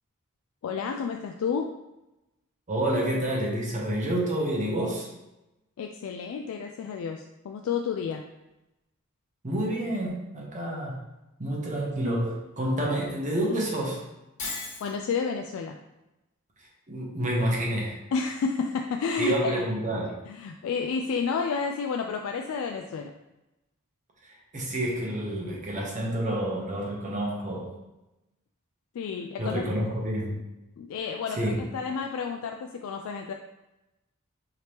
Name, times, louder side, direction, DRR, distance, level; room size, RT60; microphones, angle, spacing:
voice 1, 0.6-1.7 5.8-8.2 14.8-15.8 18.1-19.7 20.3-23.1 28.9-29.9 30.8-33.3, left 5 dB, 70° left, 3 dB, 0.3 m, -31 dB
voice 2, 2.7-5.1 9.4-11.0 11.4-14.0 16.9-18.0 19.2-20.1 24.5-27.7 29.4-30.4 31.4-31.6, right 1 dB, 35° right, -3 dB, 0.9 m, -28 dB
Shatter, 14.4-14.9, left 2 dB, 35° left, 1.5 m, -34 dB
5.0 x 2.9 x 3.0 m, 0.96 s
head